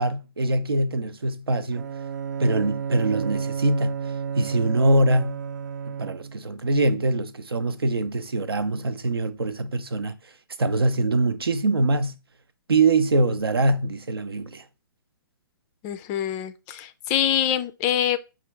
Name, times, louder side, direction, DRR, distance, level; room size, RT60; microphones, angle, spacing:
voice 1, 0.0-1.9 2.4-4.0 4.4-5.4 5.9-10.2 10.6-12.2 12.7-14.6, right 2 dB, 90° right, 0.6 m, -23 dB
Bowed string instrument, 1.7-6.5, right 6 dB, 50° right, 0.5 m, -32 dB
voice 2, 15.8-18.2, left 10 dB, 20° left, 0.3 m, -25 dB
5.0 x 2.4 x 4.5 m
hypercardioid pair, 135°, 12 cm